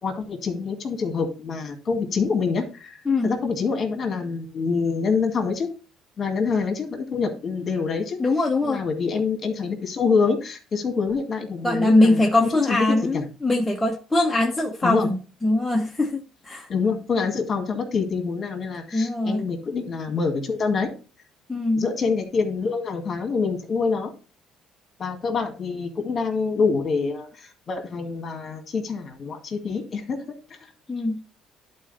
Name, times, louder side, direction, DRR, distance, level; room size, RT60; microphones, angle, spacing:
voice 1, 0.0-5.7 6.2-8.2 8.6-13.2 14.8-15.1 16.7-20.9 21.8-24.1 25.0-30.2 30.5-30.7, left 5 dB, 35° left, 4 dB, 2.0 m, -26 dB
voice 2, 8.2-8.8 11.6-15.2 15.4-16.7 18.9-19.5 21.5-21.8 30.9-31.2, left 2 dB, 5° left, 0 dB, 0.8 m, -22 dB
11.0 x 4.2 x 4.1 m, 0.34 s
cardioid pair, 145°, 0 cm